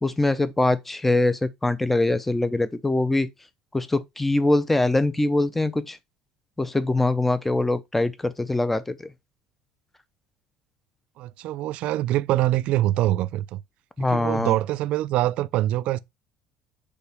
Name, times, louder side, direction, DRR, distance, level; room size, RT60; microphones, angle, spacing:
voice 1, 0.0-3.3 3.7-6.0 6.6-9.1 14.0-14.5, left 2 dB, 10° left, 0.7 m, -23 dB
voice 2, 11.2-13.6 14.1-16.0, right 15 dB, 60° right, 0.4 m, -24 dB
6.8 x 4.9 x 3.5 m
cardioid pair, 145°, 2 cm